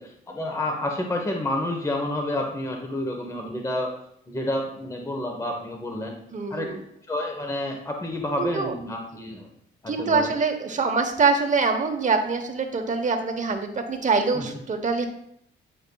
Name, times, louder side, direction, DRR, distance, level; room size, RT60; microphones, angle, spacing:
voice 1, 0.0-3.9 4.3-6.2 6.5-6.7 7.1-9.5 9.8-10.3 14.3-14.6, left 1 dB, 15° left, 2 dB, 1.0 m, -29 dB
voice 2, 6.3-6.8 8.4-8.7 9.9-15.1, right 4 dB, 40° right, 6 dB, 1.0 m, -24 dB
8.8 x 5.1 x 2.3 m, 0.74 s
cardioid pair, 90°, 20 cm